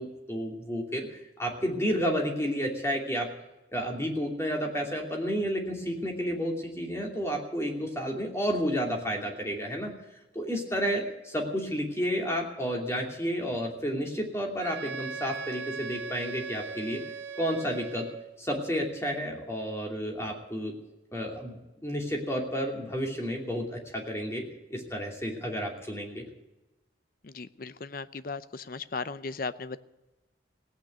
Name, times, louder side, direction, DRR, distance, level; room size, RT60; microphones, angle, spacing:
voice 1, 0.0-3.3 3.7-9.9 10.3-17.0 17.4-18.1 18.4-20.7 21.1-24.4 24.7-26.2, equal, 15° left, 0 dB, 2.7 m, -31 dB
Wind instrument woodwind instrument, 14.6-18.3, right 5 dB, 70° right, 2.0 m, -39 dB
voice 2, 27.2-29.8, left 4 dB, 50° left, 14 dB, 0.6 m, -37 dB
17.0 x 9.1 x 9.4 m, 1.0 s
head